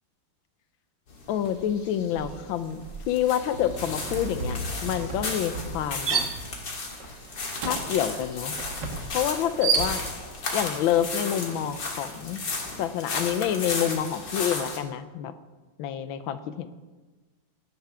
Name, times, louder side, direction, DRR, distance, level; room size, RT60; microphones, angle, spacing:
sound 1, 1.1-14.8, left 3 dB, 55° left, 2.6 m, -35 dB
voice 1, 1.3-2.8 3.1-6.3 7.6-8.5 9.1-10.0 10.5-12.4 12.8-15.3 15.8-16.7, left 10 dB, 70° left, 11 dB, 1.4 m, -27 dB
sound 2, 1.4-1.7 2.0-10.4, right 5 dB, 55° right, 1.9 m, -32 dB
17.0 x 12.5 x 3.5 m, 1.3 s
omnidirectional pair, 2.4 m